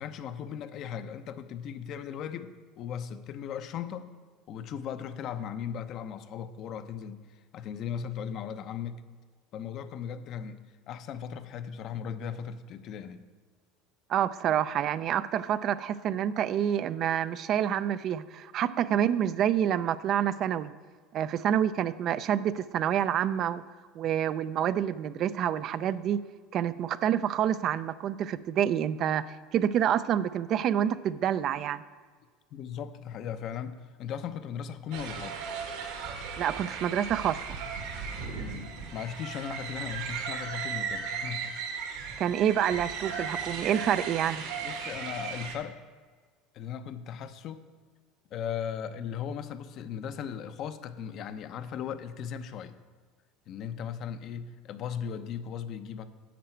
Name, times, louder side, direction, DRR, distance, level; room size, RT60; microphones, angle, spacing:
voice 1, 0.0-4.1 4.5-9.0 9.5-10.6 10.9-13.2 32.5-35.5 38.3-42.0 44.6-45.8 46.5-47.6 48.3-52.7 53.5-56.1, left 8 dB, 55° left, 11 dB, 0.7 m, -37 dB
voice 2, 14.1-20.7 21.1-23.6 24.0-26.2 26.5-29.2 29.5-31.8 36.4-37.4 42.2-44.4, right 10 dB, 50° right, 14 dB, 0.5 m, -27 dB
sound 1, 34.9-45.5, right 6 dB, 70° right, 1.7 m, -36 dB
10.5 x 7.7 x 4.5 m, 1.5 s
hypercardioid pair, 85°, 0 cm